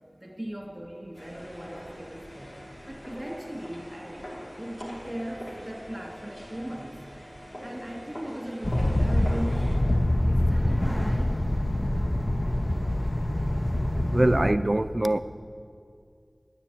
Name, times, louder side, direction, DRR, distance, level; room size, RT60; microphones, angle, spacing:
voice 1, 0.2-2.6 2.9-7.0 7.6-9.9 10.3-11.4, equal, 20° right, 1 dB, 2.4 m, -38 dB
sound 1, 1.1-9.8, equal, 60° left, 2.8 m, -43 dB
sound 2, 8.6-14.5, left 1 dB, 40° left, 0.8 m, -25 dB
voice 2, 14.1-15.2, right 1 dB, 45° right, 12 dB, 0.4 m, -22 dB
10.0 x 9.5 x 8.5 m, 2.3 s
wide cardioid pair, 40°, 0 cm